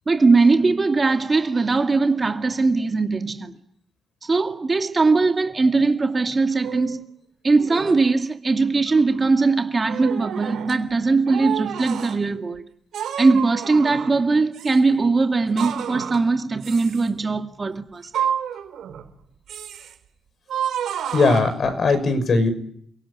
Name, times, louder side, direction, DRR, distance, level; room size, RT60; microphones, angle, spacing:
voice 1, 0.1-3.5 4.2-7.0 7.4-12.6 13.2-18.1, right 3 dB, 30° right, 2.2 m, -20 dB
sound 1, 6.6-7.0 7.6-8.0 8.6-9.2 9.9-10.8 11.3-12.2 12.9-14.2 14.5-14.8 15.6-16.3 16.6-17.1 18.0-19.1 19.5-19.9 20.5-21.9, right 9 dB, 70° right, 3.8 m, -30 dB
voice 2, 21.1-22.5, left 3 dB, 50° left, 5.9 m, -19 dB
29.0 x 17.5 x 9.9 m
cardioid pair, 90°, 0 cm